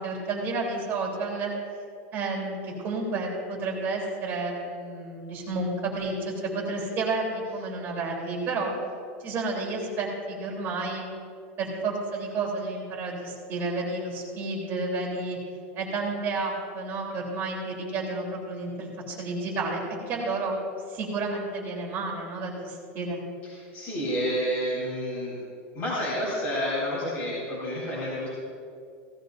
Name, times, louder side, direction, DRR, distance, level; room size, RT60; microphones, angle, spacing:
voice 1, 0.0-1.5 2.1-8.7 9.2-11.0 11.6-15.4 15.7-20.6 20.9-23.2, right 3 dB, 30° right, -3 dB, 3.3 m, -31 dB
voice 2, 23.4-25.4 25.7-28.3, equal, 25° left, -9 dB, 3.6 m, -29 dB
17.5 x 14.5 x 2.6 m, 2.3 s
supercardioid pair, 165°, 7 cm